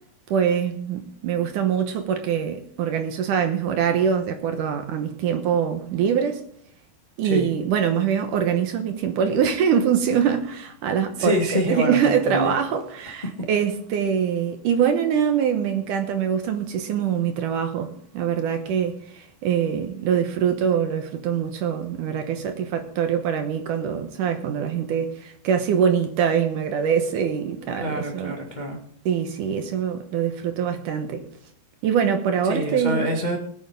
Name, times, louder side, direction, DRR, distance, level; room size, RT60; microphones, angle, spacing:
voice 1, 0.3-6.4 7.2-28.4 29.1-31.3 31.8-33.1, right 8 dB, 70° right, 2.2 m, -24 dB
voice 2, 11.2-12.5 27.8-28.8 32.4-33.4, equal, 30° left, 0.8 m, -26 dB
21.5 x 9.1 x 3.5 m
omnidirectional pair, 4.4 m